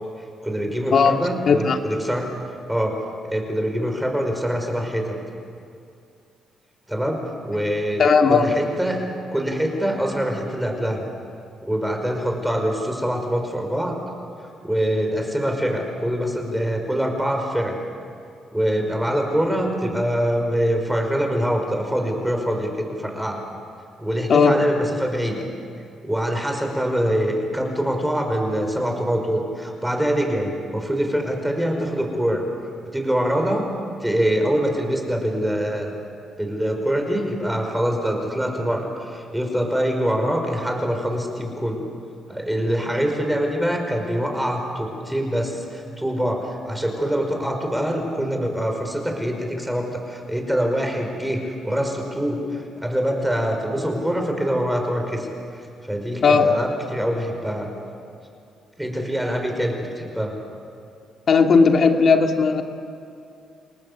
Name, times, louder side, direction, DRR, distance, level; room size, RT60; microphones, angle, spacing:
voice 1, 0.4-2.3 2.7-5.2 6.9-11.0 11.6-14.0 14.6-17.8 18.5-23.4 24.0-25.4 26.0-32.4 32.9-33.6 34.0-35.9 36.4-41.8 42.3-57.7 58.8-60.4, equal, 5° right, 3 dB, 5.4 m, -24 dB
voice 2, 1.5-1.8 8.0-8.4 24.3-24.6 56.2-56.5 61.3-62.6, left 5 dB, 50° left, 4 dB, 2.6 m, -16 dB
28.5 x 19.0 x 8.3 m, 2.5 s
cardioid pair, 90°, 0 cm